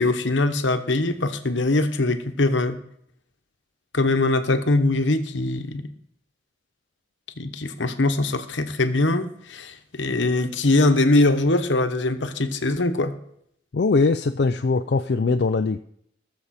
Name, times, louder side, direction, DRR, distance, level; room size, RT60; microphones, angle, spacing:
voice 1, 0.0-2.8 3.9-5.8 7.4-13.1, left 2 dB, 80° left, 7 dB, 1.1 m, -22 dB
voice 2, 13.7-15.8, left 3 dB, 60° left, 6 dB, 0.4 m, -21 dB
19.0 x 7.0 x 4.2 m, 0.71 s
head